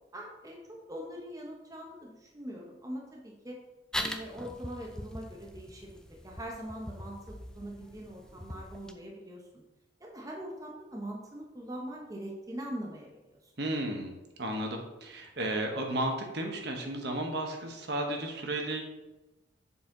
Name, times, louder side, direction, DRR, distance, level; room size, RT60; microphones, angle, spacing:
voice 1, 0.1-3.6 3.9-9.4 10.0-13.4, equal, 20° right, -1 dB, 0.8 m, -42 dB
sound 1, 3.9-8.9, left 1 dB, 5° left, 0.3 m, -41 dB
voice 2, 13.6-14.1 14.4-18.8, right 1 dB, 60° right, 2 dB, 1.1 m, -33 dB
7.1 x 4.1 x 3.8 m, 1.0 s
head